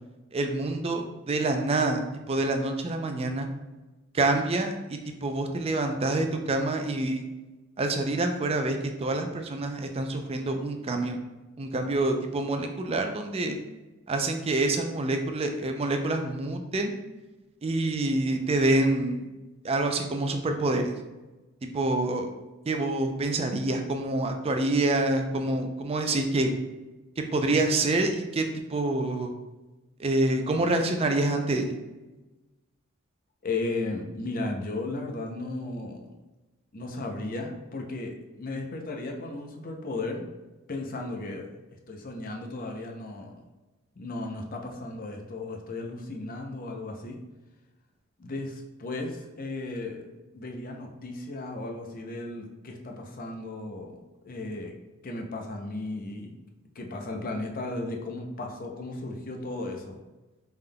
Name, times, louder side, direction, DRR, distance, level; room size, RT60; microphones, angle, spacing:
voice 1, 0.3-3.5 4.1-7.3 7.8-11.2 11.6-13.6 14.1-16.9 17.6-19.2 19.6-20.9 21.7-22.3 22.7-26.5 27.2-29.3 30.0-31.7, right 2 dB, 30° right, 5 dB, 0.4 m, -27 dB
voice 2, 33.4-36.2 36.7-40.3 40.7-41.5 41.9-43.4 44.0-47.2 48.2-53.9 54.2-56.3 56.8-60.0, left 2 dB, 40° left, 2 dB, 0.5 m, -35 dB
5.3 x 3.5 x 2.2 m, 1.1 s
head